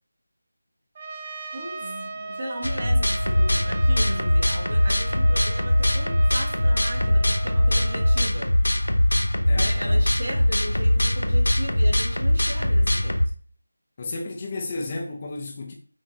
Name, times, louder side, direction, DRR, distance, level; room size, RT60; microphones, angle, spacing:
Trumpet, 1.0-8.3, right 3 dB, 25° right, 0.3 m, -37 dB
voice 1, 1.5-8.5 9.6-13.2, right 1 dB, 40° right, 1.2 m, -36 dB
sound 1, 2.6-13.3, left 1 dB, 70° left, 0.6 m, -21 dB
voice 2, 9.5-10.0 14.0-15.7, left 2 dB, 25° left, 0.6 m, -33 dB
5.7 x 2.5 x 3.1 m
figure-of-eight pair, 165°, 0 cm